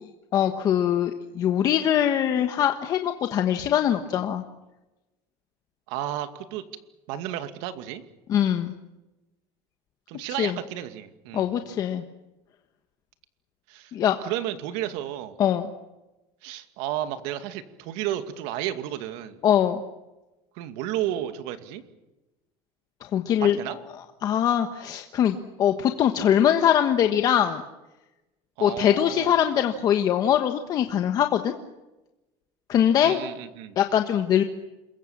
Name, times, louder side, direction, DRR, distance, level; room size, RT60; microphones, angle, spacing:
voice 1, 0.3-4.4 8.3-8.8 10.4-10.6 11.3-12.0 13.9-14.2 15.4-15.7 19.4-19.8 23.0-23.6 24.2-27.6 28.6-31.5 32.7-33.2 33.8-34.4, left 10 dB, 35° left, 6 dB, 1.3 m, -22 dB
voice 2, 5.9-6.6 7.1-8.0 10.1-11.5 13.7-13.9 14.2-15.4 16.4-19.4 20.5-21.8 23.4-23.8 28.6-29.4 33.0-33.8, right 12 dB, 75° right, 9 dB, 2.4 m, -32 dB
28.0 x 22.0 x 7.4 m, 1.0 s
cardioid pair, 170°, 11 cm